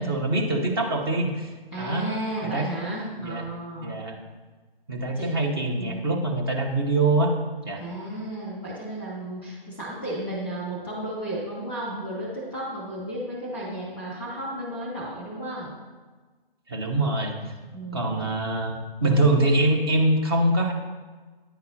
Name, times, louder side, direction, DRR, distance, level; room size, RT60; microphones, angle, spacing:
voice 1, 0.0-1.5 1.8-2.1 2.4-2.7 3.2-3.4 3.8-4.2 4.9-7.3 7.6-7.8 16.7-17.3 17.9-20.7, right 2 dB, 25° right, 0 dB, 0.8 m, -24 dB
voice 2, 1.7-4.0 5.1-5.3 5.8-6.0 7.8-15.7 17.7-18.3, right 1 dB, 5° right, -5 dB, 1.6 m, -33 dB
9.9 x 4.0 x 2.8 m, 1.3 s
figure-of-eight pair, 145°, 30 cm